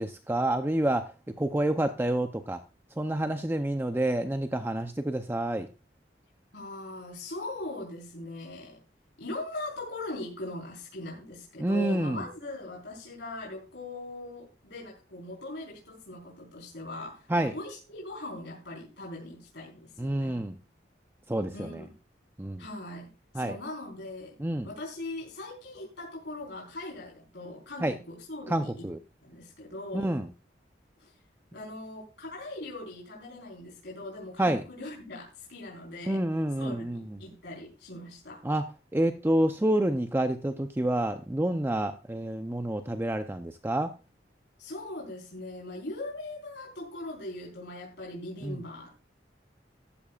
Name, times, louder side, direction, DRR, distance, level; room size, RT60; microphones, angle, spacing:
voice 1, 0.0-2.6 3.0-5.7 11.6-12.2 17.3-17.5 20.0-20.5 21.3-21.8 22.4-22.6 23.3-23.6 24.4-24.7 27.8-27.9 28.5-29.0 29.9-30.3 34.4-34.6 36.1-37.0 38.4-38.6 38.9-43.9 48.4-48.6, right 1 dB, 15° right, 7 dB, 0.6 m, -28 dB
voice 2, 6.5-8.8 9.2-20.4 21.5-21.9 22.6-24.3 24.6-28.9 29.2-30.1 31.0-31.1 31.5-36.2 36.6-38.4 44.6-49.0, left 2 dB, 75° left, -2 dB, 4.1 m, -40 dB
14.0 x 12.5 x 2.4 m, 0.30 s
head